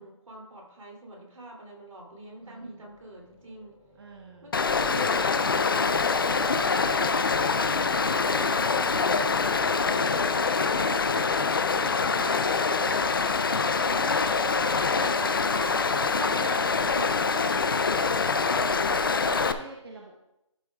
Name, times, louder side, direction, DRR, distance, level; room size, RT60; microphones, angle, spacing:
voice 1, 0.0-3.8 4.4-5.9 15.7-16.1, equal, 85° right, 0 dB, 3.1 m, -43 dB
sound 1, 2.3-17.5, left 1 dB, 5° right, 0.6 m, -48 dB
voice 2, 2.4-2.8 4.0-4.5 6.2-7.3 7.5-10.9 11.1-13.5 13.8-14.3 14.9-15.8 16.2-17.9 18.3-20.1, right 3 dB, 50° right, 1 dB, 1.0 m, -43 dB
Stream, 4.5-19.5, left 4 dB, 45° left, 0.5 m, -25 dB
12.0 x 7.8 x 2.4 m, 0.88 s
hypercardioid pair, 175°, 16 cm